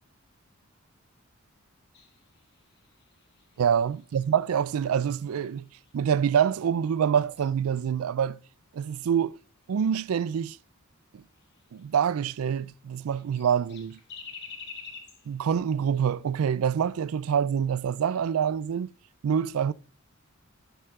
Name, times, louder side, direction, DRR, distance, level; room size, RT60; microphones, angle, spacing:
sound 1, 1.9-6.5 6.8-10.1 10.6-10.7 11.0-11.1 11.3-12.8 13.0-16.5 16.8-16.9 17.3-17.6, left 5 dB, 55° left, 2.2 m, -50 dB
voice 1, 3.6-5.7 5.9-8.4 8.7-9.4 9.7-10.6 11.1-11.2 11.7-14.0 15.3-18.9 19.2-19.7, right 8 dB, 70° right, 0.4 m, -26 dB
12.0 x 4.6 x 3.6 m
head